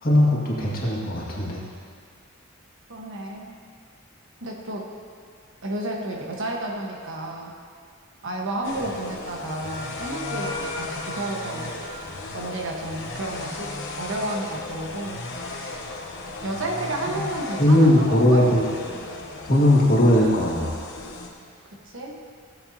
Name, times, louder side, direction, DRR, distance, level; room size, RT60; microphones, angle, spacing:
voice 1, 0.0-1.6 17.2-17.3 17.6-18.6 19.5-20.8, left 1 dB, 45° left, -5 dB, 1.9 m, -19 dB
voice 2, 2.9-3.5 4.4-4.9 5.6-7.5 8.2-11.8 12.3-15.8 16.4-18.7 21.6-22.2, right 1 dB, 65° right, -1 dB, 1.3 m, -32 dB
sound 1, 8.6-21.3, left 3 dB, 60° left, 1.1 m, -36 dB
Wind instrument woodwind instrument, 8.8-12.7, left 1 dB, 20° left, 1.4 m, -39 dB
15.5 x 7.6 x 2.8 m, 2.2 s
head